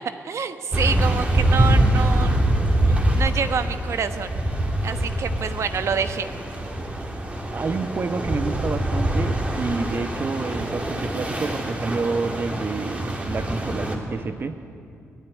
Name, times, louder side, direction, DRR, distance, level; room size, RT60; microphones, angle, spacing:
voice 1, 0.2-2.4 3.2-4.3 4.8-6.3, right 6 dB, 60° right, 10 dB, 1.3 m, -27 dB
sound 1, 0.7-14.0, right 1 dB, 25° right, 3.0 m, -24 dB
voice 2, 7.5-14.6, right 4 dB, 40° right, 10 dB, 1.3 m, -28 dB
22.0 x 16.0 x 9.7 m, 2.4 s
cardioid pair, 95°, 5 cm